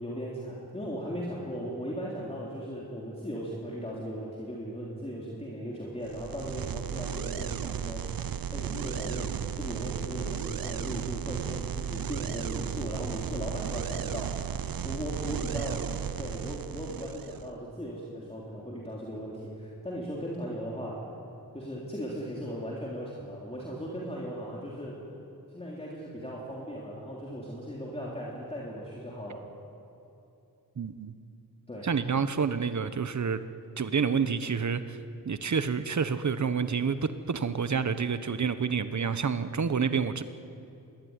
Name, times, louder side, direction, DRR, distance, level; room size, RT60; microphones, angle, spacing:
voice 1, 0.0-14.4 14.8-15.9 16.2-21.0 21.5-25.0 25.5-29.5 31.7-31.9, equal, 15° left, -5 dB, 3.5 m, -37 dB
sound 1, 6.0-17.5, right 8 dB, 70° right, 0.8 m, -35 dB
voice 2, 30.8-31.1 31.8-33.4 33.8-35.0 35.2-40.2, right 6 dB, 50° right, 11 dB, 1.2 m, -28 dB
26.5 x 21.0 x 9.8 m, 2.8 s
wide cardioid pair, 155°, 36 cm